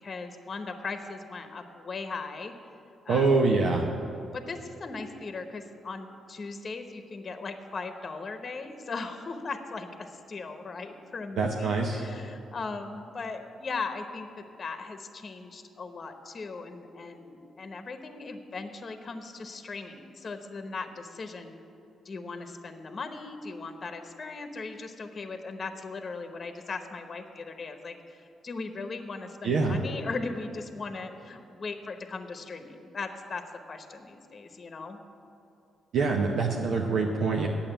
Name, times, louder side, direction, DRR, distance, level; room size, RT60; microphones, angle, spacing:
voice 1, 0.0-2.5 3.0-3.5 4.3-21.6 22.0-35.0, left 4 dB, 45° left, 7 dB, 0.9 m, -38 dB
voice 2, 3.1-3.9 11.4-12.0 29.4-29.8 35.9-37.5, right 4 dB, 80° right, 0 dB, 0.9 m, -25 dB
8.8 x 7.2 x 8.9 m, 2.8 s
cardioid pair, 80°, 0 cm